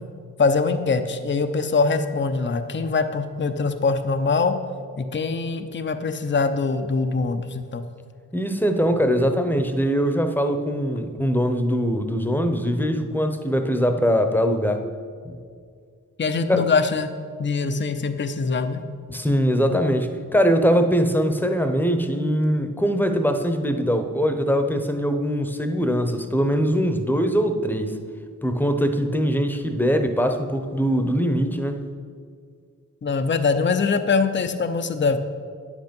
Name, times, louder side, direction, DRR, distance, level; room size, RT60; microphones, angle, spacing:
voice 1, 0.4-4.6 5.0-7.8 16.2-17.1 17.4-18.8 33.0-35.2, left 4 dB, 35° left, 8 dB, 0.7 m, -23 dB
voice 2, 8.3-14.8 15.2-15.4 16.5-16.7 19.1-28.0 28.4-31.8, equal, 5° left, 7 dB, 1.0 m, -22 dB
9.7 x 8.1 x 5.4 m, 2.1 s
cardioid pair, 60°, 34 cm